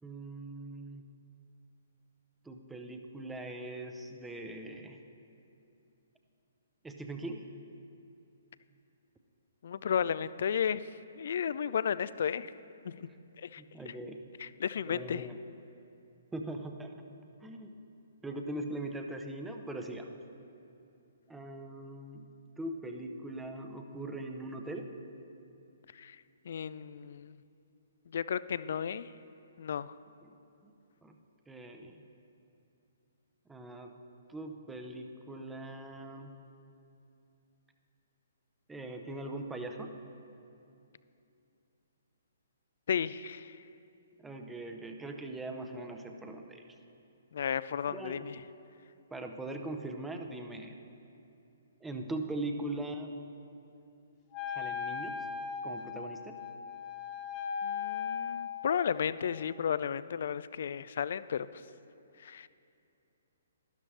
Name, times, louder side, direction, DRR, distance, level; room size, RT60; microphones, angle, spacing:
voice 1, 0.0-1.0 2.4-5.0 6.8-7.5 13.6-14.2 14.9-15.4 16.3-16.9 17.4-17.8 18.2-20.1 21.3-22.3 22.6-24.9 30.2-30.4 30.6-30.7 31.0-31.1 31.5-32.0 33.5-33.9 34.3-36.3 38.7-40.0 44.2-46.7 47.9-48.3 49.1-50.7 51.8-53.1 54.5-55.3 55.6-56.4, right 1 dB, 10° right, 4 dB, 0.7 m, -41 dB
voice 2, 9.6-10.8 11.2-12.5 12.8-13.1 13.4-13.6 14.4-15.3 25.9-26.2 26.5-27.4 28.1-29.1 29.6-29.9 42.9-43.6 47.3-48.3 57.6-61.6 62.2-62.5, left 8 dB, 55° left, 16 dB, 0.3 m, -33 dB
Wind instrument woodwind instrument, 54.3-58.9, left 7 dB, 30° left, 0.8 m, -37 dB
12.0 x 12.0 x 3.2 m, 2.7 s
figure-of-eight pair, 125°, 0 cm